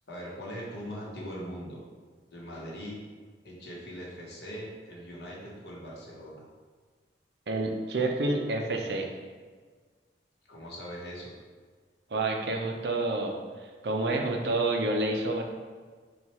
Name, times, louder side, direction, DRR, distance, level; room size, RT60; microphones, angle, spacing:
voice 1, 0.1-1.8 2.3-3.0 3.4-6.4 10.5-11.3, equal, 65° left, -4 dB, 1.0 m, -41 dB
voice 2, 7.5-9.1 12.1-15.4, right 2 dB, 65° right, 2 dB, 0.5 m, -29 dB
4.3 x 2.3 x 4.3 m, 1.5 s
head